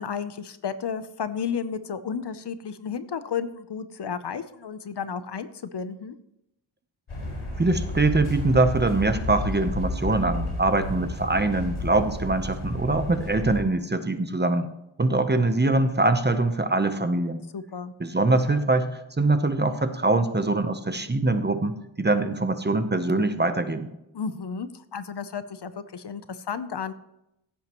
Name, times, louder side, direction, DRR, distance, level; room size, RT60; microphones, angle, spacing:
voice 1, 0.0-6.2 17.5-17.9 24.1-26.9, left 6 dB, 55° left, 12 dB, 0.7 m, -32 dB
sound 1, 7.1-13.6, left 1 dB, 90° left, 4.8 m, -32 dB
voice 2, 7.6-14.7 15.0-17.4 18.0-23.9, right 2 dB, 20° right, 9 dB, 0.8 m, -23 dB
15.5 x 8.8 x 3.0 m, 0.83 s
wide cardioid pair, 110°, 48 cm